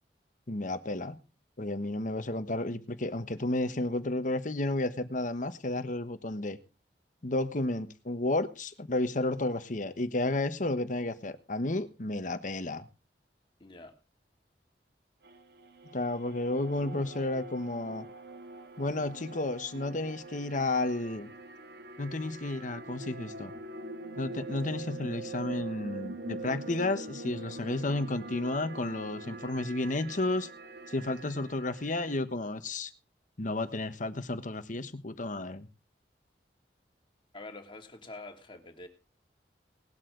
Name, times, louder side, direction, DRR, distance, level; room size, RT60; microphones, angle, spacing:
voice 1, 0.5-1.2 1.6-6.6 7.2-12.9 15.9-18.1 18.8-21.3 22.0-23.5 24.2-30.5 30.9-32.9 33.4-35.7, left 2 dB, 45° left, 10 dB, 1.3 m, -32 dB
voice 2, 13.6-13.9 37.3-38.9, left 2 dB, 30° left, 3 dB, 2.9 m, -46 dB
sound 1, 15.2-32.1, right 2 dB, 65° right, 1.5 m, -44 dB
19.0 x 12.5 x 3.9 m, 0.33 s
head